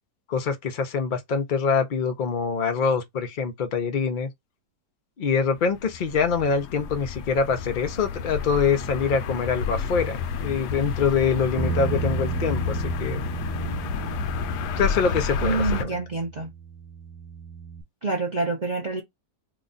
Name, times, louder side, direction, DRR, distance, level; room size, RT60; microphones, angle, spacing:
voice 1, 0.3-4.3 5.2-13.2 14.8-15.9, left 5 dB, 60° left, 0.5 m, -25 dB
sound 1, 5.5-15.8, left 6 dB, 80° left, 1.2 m, -30 dB
Bass guitar, 11.6-17.8, right 7 dB, 85° right, 1.3 m, -33 dB
voice 2, 15.4-16.5 18.0-19.0, right 3 dB, 50° right, 0.5 m, -27 dB
3.1 x 2.3 x 3.9 m
omnidirectional pair, 1.8 m